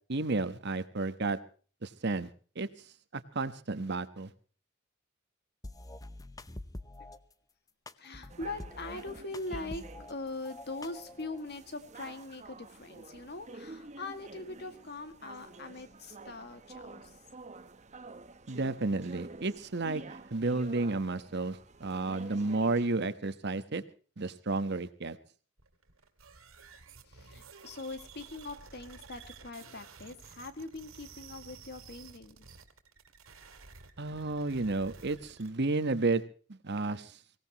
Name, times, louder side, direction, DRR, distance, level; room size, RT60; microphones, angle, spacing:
voice 1, 0.1-1.4 1.8-2.3 2.5-2.7 3.1-4.3 18.5-20.0 20.3-23.8 24.2-25.2 34.0-36.2 36.5-37.2, right 3 dB, 55° right, 12 dB, 1.2 m, -32 dB
sound 1, 5.6-7.2 7.9-10.1 10.4-11.4, left 2 dB, 20° left, 0.8 m, -46 dB
voice 2, 8.0-17.2 27.0-32.5, left 2 dB, 55° left, 9 dB, 2.0 m, -42 dB
sound 2, 8.3-22.9, right 3 dB, 35° right, 1.0 m, -50 dB
sound 3, 25.6-35.5, right 5 dB, 80° right, 2.5 m, -53 dB
24.0 x 17.5 x 3.0 m, 0.40 s
head